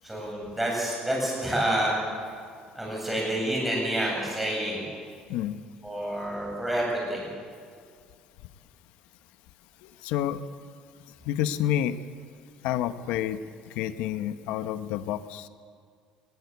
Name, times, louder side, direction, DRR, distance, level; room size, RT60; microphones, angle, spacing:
voice 1, 0.0-1.9 2.7-4.9 5.8-7.3, right 1 dB, 5° right, -3 dB, 7.9 m, -28 dB
voice 2, 9.8-10.4 11.2-12.0 12.6-13.4 13.7-15.5, left 11 dB, 80° left, 12 dB, 1.0 m, -29 dB
20.5 x 17.0 x 8.2 m, 2.1 s
cardioid pair, 140°, 2 cm